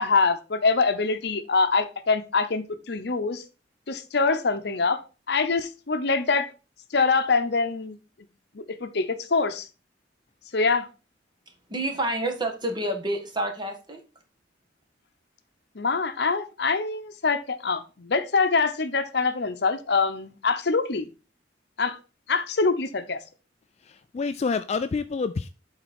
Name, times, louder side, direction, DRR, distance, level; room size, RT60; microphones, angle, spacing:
voice 1, 0.0-3.4 3.9-5.0 5.3-6.5 6.9-8.0 8.5-9.7 10.5-10.9 15.7-21.1 21.8-22.0 22.3-23.2, left 4 dB, 65° left, 0.8 m, -24 dB
voice 2, 11.7-14.0, right 1 dB, 25° right, 1.5 m, -28 dB
voice 3, 23.8-25.5, left 4 dB, 35° left, 0.3 m, -28 dB
8.8 x 4.1 x 4.2 m
head